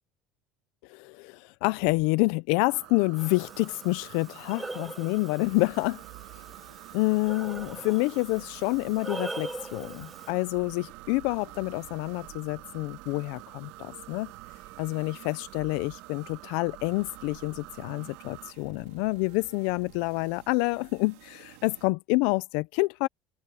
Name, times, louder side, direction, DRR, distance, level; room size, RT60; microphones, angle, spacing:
voice 1, 0.9-6.0 6.9-14.3 14.8-23.1, left 25 dB, 75° left, 0.5 m, -28 dB
sound 1, 2.7-18.5, right 19 dB, 65° right, 7.4 m, -48 dB
Breathing, 3.2-10.3, right 2 dB, 10° right, 0.9 m, -42 dB
sound 2, 5.4-21.9, right 23 dB, 85° right, 4.0 m, -52 dB
open air
supercardioid pair, 125°, 0 cm